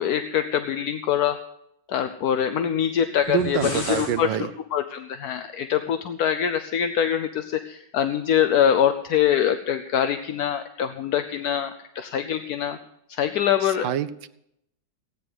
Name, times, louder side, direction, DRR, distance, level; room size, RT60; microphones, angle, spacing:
voice 1, 0.0-1.4 1.9-12.8 13.1-13.9, left 9 dB, 65° left, 9 dB, 1.0 m, -24 dB
sound 1, 3.2-4.2, left 2 dB, 50° left, 3.3 m, -33 dB
voice 2, 3.3-4.5 13.6-14.3, right 11 dB, 75° right, 12 dB, 1.3 m, -26 dB
16.5 x 9.4 x 6.1 m, 0.78 s
omnidirectional pair, 2.1 m